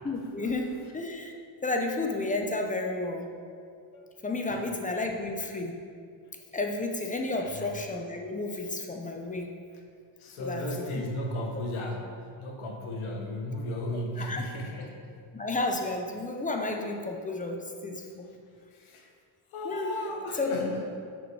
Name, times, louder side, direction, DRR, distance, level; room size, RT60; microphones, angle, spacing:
voice 1, 0.0-1.3 1.6-3.2 4.2-5.7 6.5-9.5 10.4-11.0 11.5-11.6 13.9-14.4 15.3-18.3 19.6-19.9 20.3-20.7, left 2 dB, 15° left, 2 dB, 0.6 m, -32 dB
voice 2, 10.2-12.1 12.4-15.0 18.7-19.1 19.5-20.9, left 1 dB, 75° left, 1 dB, 1.4 m, -35 dB
6.7 x 6.2 x 4.7 m, 2.2 s
cardioid pair, 145°, 49 cm